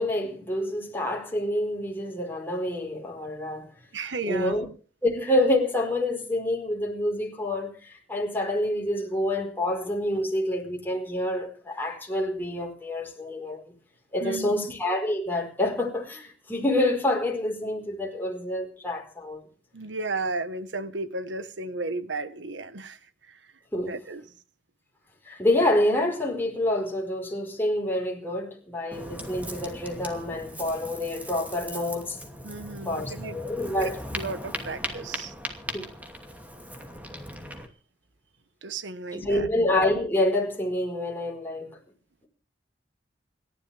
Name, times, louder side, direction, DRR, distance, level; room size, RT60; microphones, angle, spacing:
voice 1, 0.0-3.7 4.2-4.7 5.0-13.7 14.1-19.4 23.7-23.9 25.2-32.2 32.9-34.0 35.7-35.9 39.1-41.8, left 1 dB, 10° left, 4.5 m, -27 dB
voice 2, 3.9-4.6 14.2-14.7 19.7-23.5 23.8-24.2 32.4-33.4 33.8-35.3 38.6-39.5, right 3 dB, 85° right, 1.4 m, -34 dB
Ocean, 28.9-37.7, equal, 10° right, 2.6 m, -38 dB
28.5 x 11.5 x 3.5 m
head